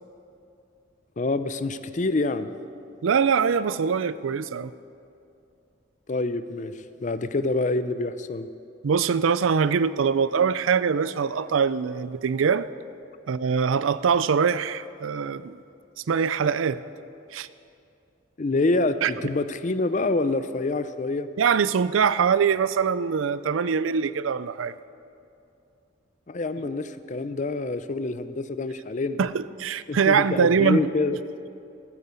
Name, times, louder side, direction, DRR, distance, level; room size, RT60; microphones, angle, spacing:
voice 1, 1.2-2.5 6.1-6.7 7.0-8.5 18.4-21.3 26.3-29.2 29.9-31.2, left 2 dB, 40° left, 12 dB, 0.5 m, -26 dB
voice 2, 3.0-4.7 8.8-12.7 13.3-15.6 16.0-16.8 17.3-17.5 19.0-19.1 21.4-24.7 29.2-30.9, right 6 dB, 90° right, 16 dB, 0.4 m, -23 dB
13.0 x 9.7 x 8.2 m, 2.6 s
head